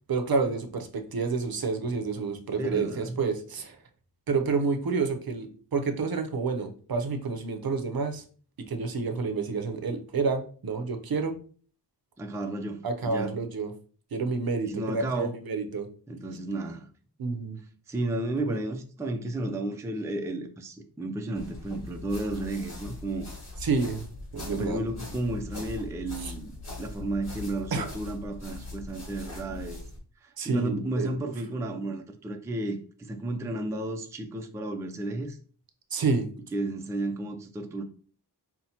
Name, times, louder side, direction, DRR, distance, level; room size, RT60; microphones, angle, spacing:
voice 1, 0.1-3.8 4.3-8.2 8.7-11.3 12.8-13.7 14.1-15.9 17.2-17.6 18.5-18.6 23.6-24.0 24.3-24.8 26.2-26.3 27.7-27.9 30.4-31.3 35.9-36.3, right 4 dB, 60° right, 0.6 m, -29 dB
voice 2, 2.6-3.2 12.2-13.4 14.7-15.3 16.1-16.9 17.9-23.3 24.4-26.5 26.8-29.8 30.2-35.4 36.5-37.8, right 2 dB, 10° right, 0.3 m, -33 dB
sound 1, 21.3-30.0, left 2 dB, 40° left, 1.6 m, -41 dB
5.5 x 2.1 x 2.8 m
wide cardioid pair, 110°, 41 cm